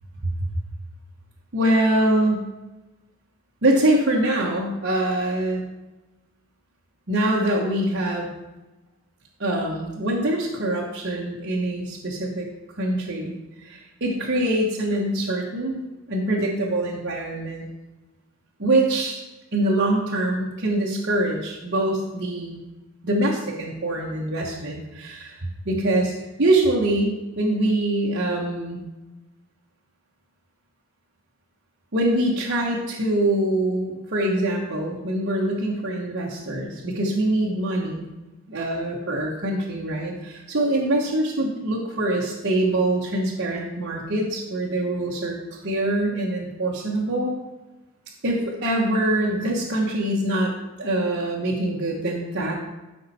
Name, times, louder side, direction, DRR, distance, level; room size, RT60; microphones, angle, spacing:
voice 1, 1.5-2.4 3.6-5.6 7.1-8.3 9.4-12.5 12.7-15.8 16.1-17.7 18.6-19.2 19.5-22.6 23.0-26.1 26.4-28.8 31.9-38.1 38.5-47.3 48.2-50.5 50.8-52.6, right 1 dB, 55° right, -3 dB, 1.2 m, -24 dB
12.5 x 5.4 x 4.2 m, 1.1 s
head